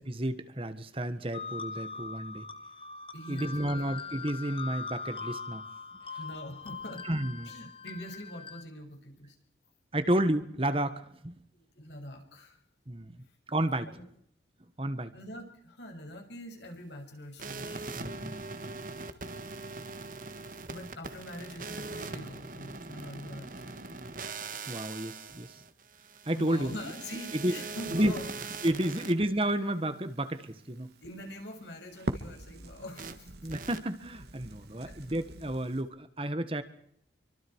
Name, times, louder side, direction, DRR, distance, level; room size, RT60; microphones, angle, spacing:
voice 1, 0.0-2.4 3.3-5.6 7.0-7.5 9.9-11.3 12.9-13.2 13.5-13.9 14.8-15.1 17.9-18.4 24.7-25.6 26.2-26.7 27.4-27.6 27.9-28.1 28.6-30.9 33.4-36.6, right 1 dB, 30° right, 10 dB, 1.6 m, -31 dB
sound 1, 1.3-8.6, left 4 dB, 30° left, 1.2 m, -41 dB
voice 2, 3.1-3.9 6.2-7.0 7.4-9.3 11.5-12.6 13.8-14.0 15.1-18.4 20.5-24.1 26.3-28.3 28.9-29.1 31.0-33.3 34.8-34.9, left 1 dB, 80° left, 2 dB, 6.7 m, -44 dB
sound 2, 17.4-29.1 33.0-33.1 33.5-33.8, right 3 dB, 45° right, 1.6 m, -41 dB
Crackle, 28.0-35.8, right 1 dB, 65° right, 2.3 m, -44 dB
27.5 x 24.5 x 4.8 m, 0.69 s
head